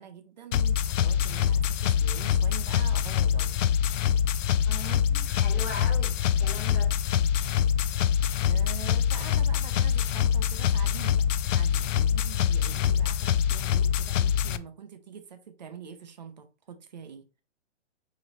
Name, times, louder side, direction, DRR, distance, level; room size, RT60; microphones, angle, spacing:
voice 1, 0.0-3.5 8.4-11.2 11.5-17.2, right 7 dB, 35° right, 0.5 m, -45 dB
sound 1, 0.5-14.6, left 8 dB, 90° left, 0.5 m, -25 dB
voice 2, 4.7-7.0, left 2 dB, 15° left, 0.4 m, -39 dB
4.9 x 3.0 x 2.6 m
hypercardioid pair, 170°, 36 cm